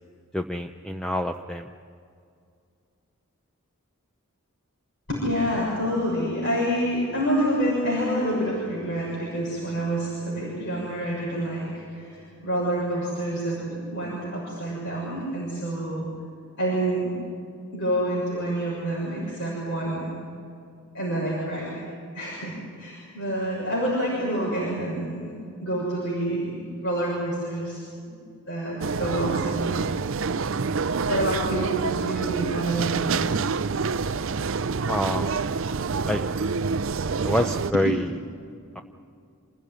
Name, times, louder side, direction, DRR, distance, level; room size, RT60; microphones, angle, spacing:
voice 1, 0.3-1.7 34.9-35.3 36.0-36.2 37.2-38.1 38.7-38.8, left 1 dB, 5° left, 5 dB, 0.6 m, -26 dB
voice 2, 5.1-16.1 16.6-17.1 17.7-20.1 20.9-21.7 22.1-25.3 25.6-28.2 28.5-29.8 31.1-33.4, right 1 dB, 55° left, -5 dB, 6.7 m, -28 dB
sound 1, 28.8-37.7, right 5 dB, 60° right, 0.5 m, -27 dB
27.5 x 16.5 x 9.5 m, 2.3 s
head